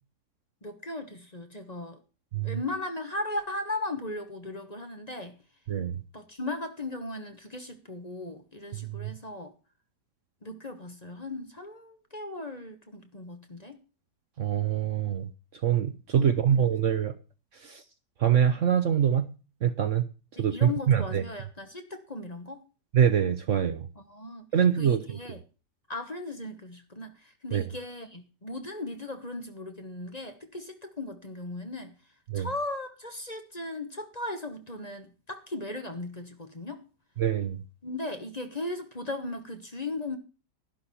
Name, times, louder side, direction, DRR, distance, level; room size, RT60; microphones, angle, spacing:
voice 1, 0.6-2.0 2.4-5.4 6.1-9.5 10.4-13.8 16.1-16.6 20.4-22.6 23.9-24.5 24.7-25.4 25.9-32.0 32.3-36.8 37.8-40.2, left 2 dB, 25° left, 1.3 m, -37 dB
voice 2, 8.7-9.1 14.4-15.3 15.6-17.1 17.6-17.8 18.2-19.3 19.6-20.0 20.4-21.2 22.9-23.9 24.5-25.0 27.5-27.6 32.3-32.5 37.2-37.6, right 9 dB, 55° right, 1.0 m, -24 dB
12.0 x 11.5 x 4.3 m
omnidirectional pair, 1.8 m